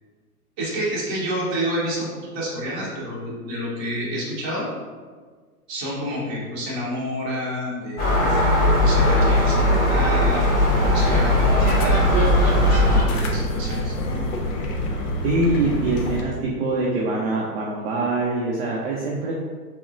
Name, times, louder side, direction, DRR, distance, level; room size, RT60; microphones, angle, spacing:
voice 1, 0.6-2.1 2.3-4.7 5.7-8.2 8.8-12.0 12.6-13.9, equal, 25° right, -6 dB, 1.0 m, -29 dB
Gull seagull, 8.0-13.0, left 1 dB, 20° left, 0.8 m, -18 dB
sound 1, 10.7-16.2, left 1 dB, 55° left, 0.6 m, -27 dB
voice 2, 15.2-19.3, right 2 dB, 40° right, -3 dB, 0.5 m, -24 dB
4.1 x 2.1 x 2.5 m, 1.5 s
hypercardioid pair, 135°, 47 cm